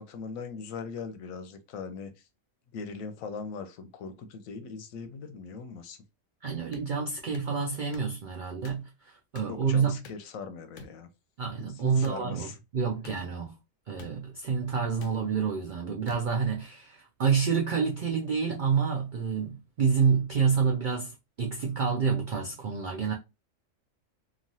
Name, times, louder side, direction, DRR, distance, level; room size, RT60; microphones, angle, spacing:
voice 1, 0.0-2.1 2.7-6.0 9.5-11.1 11.8-12.6, left 5 dB, 85° left, 1.0 m, -40 dB
voice 2, 6.4-10.0 11.4-13.6 13.9-23.1, right 6 dB, 85° right, 0.4 m, -28 dB
sound 1, 6.7-6.9 7.3-7.5 7.9-8.1 8.6-8.8 9.4-9.5 10.0-10.3 10.8-11.0 12.0-12.2 13.0-13.2 14.0-14.1 15.0-15.1 16.1-16.2, left 4 dB, 70° left, 0.9 m, -47 dB
3.0 x 2.4 x 2.6 m
omnidirectional pair, 1.4 m